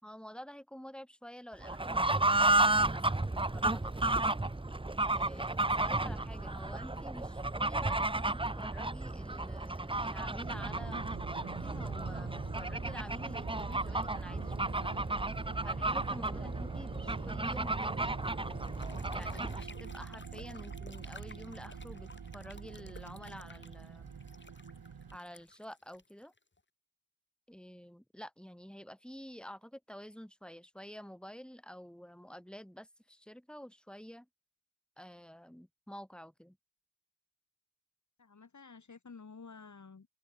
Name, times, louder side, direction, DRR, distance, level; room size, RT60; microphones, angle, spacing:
voice 1, 0.0-2.4 2.7-4.2 5.1-15.1 15.6-18.2 19.1-24.2 25.1-26.3 27.5-34.3 35.0-36.6, equal, ahead, 7.1 m, -49 dB
Fowl / Bird, 1.6-19.7, right 2 dB, 15° right, 1.1 m, -33 dB
sound 1, 10.4-25.2, right 6 dB, 60° right, 5.2 m, -45 dB
sound 2, 18.6-26.6, left 3 dB, 30° left, 5.3 m, -54 dB
voice 2, 38.2-40.1, left 4 dB, 45° left, 5.3 m, -52 dB
open air
cardioid pair, 65°, 39 cm